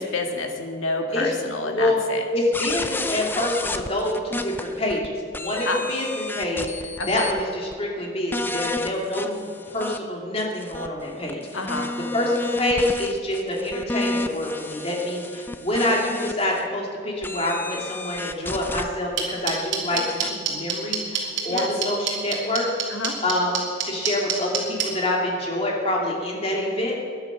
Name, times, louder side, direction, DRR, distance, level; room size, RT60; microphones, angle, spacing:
voice 1, 0.0-2.2 5.7-5.8 7.0-7.3 8.7-8.8 11.5-11.9 21.5-21.7 22.9-23.1, left 3 dB, 90° left, 3 dB, 2.1 m, -28 dB
voice 2, 1.6-2.0 2.3-9.4 9.7-11.4 12.1-22.7 23.2-27.0, left 1 dB, 30° left, -2 dB, 2.6 m, -26 dB
sound 1, 2.5-5.1 5.3-7.4 7.7-7.8 8.3-10.0 10.4-16.6 17.2-18.9 19.9-20.3, left 2 dB, 10° left, 0.5 m, -31 dB
sound 2, 19.2-24.8, right 9 dB, 70° right, 3.1 m, -24 dB
19.0 x 11.0 x 6.1 m, 2.5 s
head